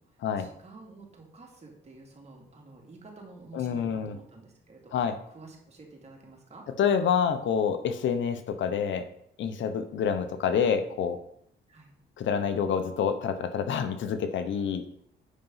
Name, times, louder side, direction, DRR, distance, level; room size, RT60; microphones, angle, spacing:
voice 1, 0.4-5.0 5.3-6.7 11.7-11.9, right 3 dB, 35° right, -1 dB, 3.0 m, -50 dB
voice 2, 3.5-4.2 4.9-5.2 6.8-9.1 9.4-11.2 12.2-14.8, left 7 dB, 70° left, 9 dB, 1.0 m, -27 dB
8.6 x 5.3 x 5.7 m, 0.69 s
cardioid pair, 90°, 20 cm